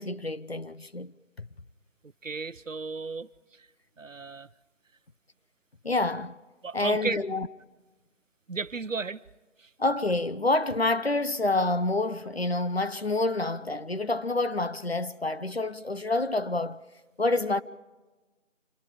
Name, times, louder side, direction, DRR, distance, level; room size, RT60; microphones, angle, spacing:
voice 1, 0.0-1.5 5.8-6.4 6.7-7.5 9.8-16.8 17.2-17.6, left 2 dB, 50° left, 0.8 m, -28 dB
voice 2, 2.2-3.7 4.0-4.5 6.6-7.2 8.5-9.2 9.6-9.7, right 4 dB, 75° right, 0.8 m, -34 dB
26.5 x 21.0 x 5.0 m
figure-of-eight pair, 170°, 38 cm